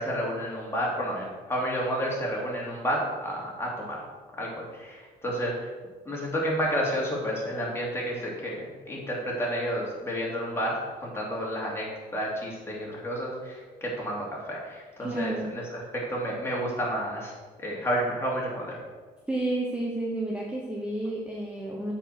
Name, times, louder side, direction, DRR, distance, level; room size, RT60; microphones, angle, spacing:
voice 1, 0.0-4.0 4.4-5.7 6.0-17.3 17.6-18.8, equal, 15° left, -4 dB, 2.9 m, -31 dB
voice 2, 15.0-15.4 19.3-21.9, right 2 dB, 5° right, -2 dB, 1.1 m, -31 dB
7.7 x 5.0 x 6.3 m, 1.4 s
cardioid pair, 110°, 17 cm